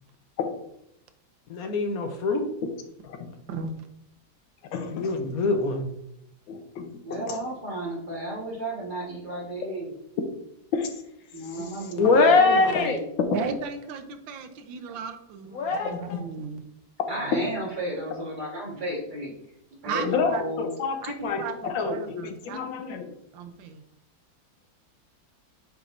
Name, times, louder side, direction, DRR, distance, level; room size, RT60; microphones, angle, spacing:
voice 1, 1.5-2.5 4.9-5.9 12.0-13.0 15.5-16.2, left 3 dB, 65° left, 5 dB, 1.0 m, -22 dB
voice 2, 3.0-3.3 4.7-5.2 6.5-7.4 10.7-11.0 13.2-13.3 20.0-23.1, left 5 dB, 85° left, 6 dB, 1.6 m, -30 dB
voice 3, 7.0-9.9 11.3-13.0 17.1-19.3 19.7-20.7, right 1 dB, 25° right, -3 dB, 1.5 m, -33 dB
voice 4, 13.3-16.6 17.2-17.4 19.8-20.4 21.0-22.7 23.3-23.8, right 5 dB, 85° right, 8 dB, 1.5 m, -35 dB
8.3 x 4.8 x 2.6 m, 0.79 s
omnidirectional pair, 2.0 m